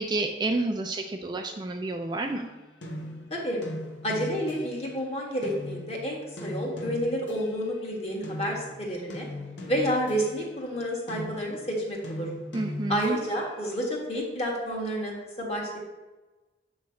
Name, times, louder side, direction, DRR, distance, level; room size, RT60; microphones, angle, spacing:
voice 1, 0.0-2.5 12.5-13.2, right 2 dB, 25° right, 3 dB, 0.4 m, -29 dB
sound 1, 2.2-5.0 5.4-7.8 8.2-13.5, left 1 dB, 75° left, 1.0 m, -39 dB
voice 2, 3.3-3.6 4.0-9.3 9.7-12.3 12.9-15.9, equal, 35° left, -1 dB, 1.5 m, -30 dB
7.3 x 3.1 x 5.7 m, 1.1 s
head